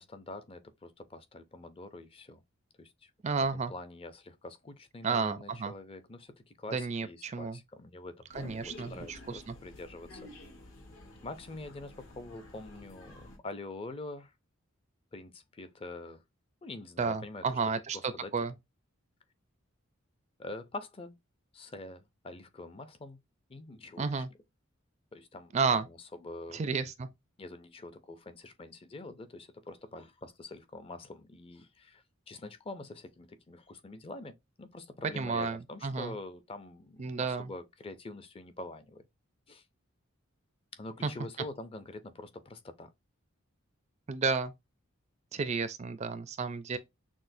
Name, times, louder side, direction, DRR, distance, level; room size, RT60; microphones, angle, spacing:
voice 1, 0.0-2.4 2.8-3.1 3.4-10.3 11.2-14.3 15.1-16.2 16.6-17.4 17.9-18.3 20.4-21.1 21.5-23.2 23.5-24.2 25.1-26.8 27.4-39.0 39.5-39.6 40.7-42.9, left 2 dB, 25° left, 0.5 m, -45 dB
voice 2, 3.2-3.7 5.0-5.7 6.7-7.6 8.3-9.6 17.0-18.5 24.0-24.3 25.5-25.9 26.5-27.1 35.2-36.2 37.0-37.5 41.0-41.1 44.1-44.5 45.3-46.8, right 4 dB, 35° right, 0.4 m, -32 dB
sound 1, 8.3-13.4, left 1 dB, 75° left, 1.4 m, -51 dB
6.1 x 2.1 x 2.6 m
head